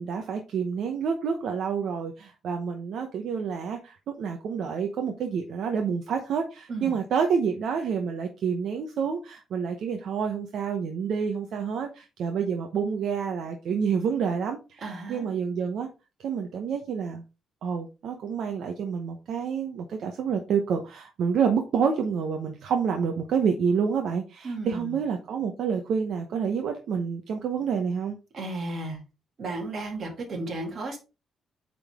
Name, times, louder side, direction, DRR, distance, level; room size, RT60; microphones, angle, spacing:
voice 1, 0.0-15.9 16.2-17.2 17.6-28.2, right 6 dB, 60° right, 4 dB, 0.9 m, -28 dB
voice 2, 14.8-15.3 24.4-25.0 28.3-29.0 29.4-31.0, right 2 dB, 40° right, 2 dB, 2.1 m, -34 dB
8.6 x 3.8 x 3.5 m, 0.29 s
cardioid pair, 160°, 0 cm